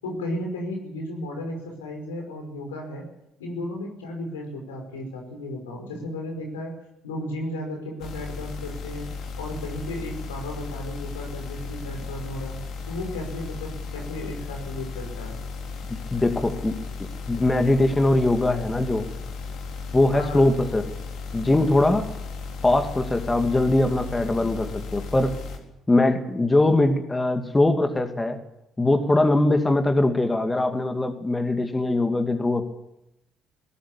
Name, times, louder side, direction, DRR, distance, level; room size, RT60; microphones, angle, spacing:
voice 1, 0.0-3.0 3.4-6.7 7.0-9.1 9.4-12.6 12.9-15.4 20.1-20.5, left 1 dB, 85° left, 1 dB, 5.4 m, -34 dB
sound 1, 8.0-25.6, left 4 dB, 60° left, 3.8 m, -35 dB
voice 2, 16.1-16.8 17.3-19.1 19.9-20.9 21.3-22.1 22.6-25.3 25.9-28.4 28.8-32.6, left 2 dB, 20° left, 7 dB, 2.5 m, -21 dB
20.0 x 18.0 x 8.6 m, 0.87 s
hypercardioid pair, 50°, 0 cm